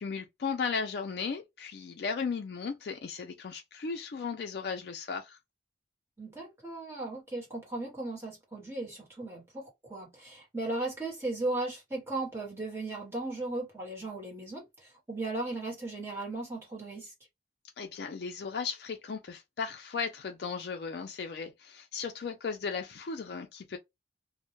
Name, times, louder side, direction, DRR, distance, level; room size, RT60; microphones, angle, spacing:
voice 1, 0.0-5.4 17.8-23.8, left 5 dB, 60° left, 0.4 m, -36 dB
voice 2, 6.2-17.1, right 2 dB, 15° right, 1.0 m, -36 dB
2.1 x 2.1 x 3.0 m
head